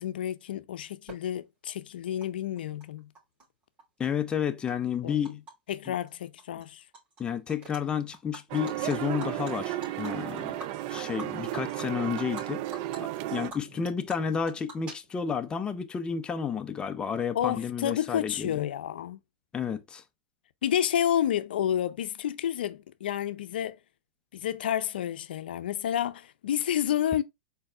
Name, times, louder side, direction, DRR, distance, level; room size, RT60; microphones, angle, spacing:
voice 1, 0.0-3.0 5.0-5.3 5.7-6.8 17.3-19.2 20.6-23.8 24.3-27.2, left 10 dB, 85° left, 0.5 m, -30 dB
Animal, 1.1-1.2 2.2-2.3 2.6-3.4 3.8-5.5 5.8-6.1 6.4-7.2 7.5-7.8 8.1-12.4 12.7-13.0 13.3-15.4, right 2 dB, 25° right, 3.1 m, -46 dB
voice 2, 4.0-5.4 5.9-6.0 7.2-10.6 10.9-12.6 13.0-18.6 19.5-20.0, left 7 dB, 20° left, 0.6 m, -31 dB
sound 1, 8.5-13.5, right 14 dB, 50° right, 0.5 m, -34 dB
4.6 x 4.3 x 2.4 m
hypercardioid pair, 125°, 5 cm